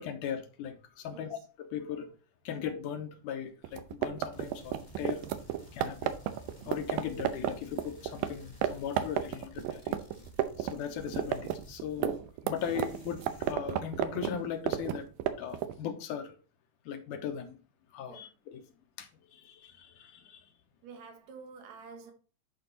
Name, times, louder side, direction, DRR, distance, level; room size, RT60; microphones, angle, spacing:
voice 1, 0.0-2.1 2.5-5.2 5.7-6.1 6.7-10.0 10.6-15.1 15.4-16.4 16.9-17.6 17.9-18.6 19.0-20.5, left 8 dB, 70° left, 2.4 m, -38 dB
sound 1, 3.6-8.3 8.6-8.7 9.0-10.7 11.0-15.7, right 12 dB, 85° right, 2.4 m, -31 dB
sound 2, 4.3-12.3 12.6-13.5, left 1 dB, 20° left, 1.4 m, -53 dB
voice 2, 20.8-22.1, right 5 dB, 60° right, 2.5 m, -48 dB
11.0 x 4.5 x 4.0 m
omnidirectional pair, 4.0 m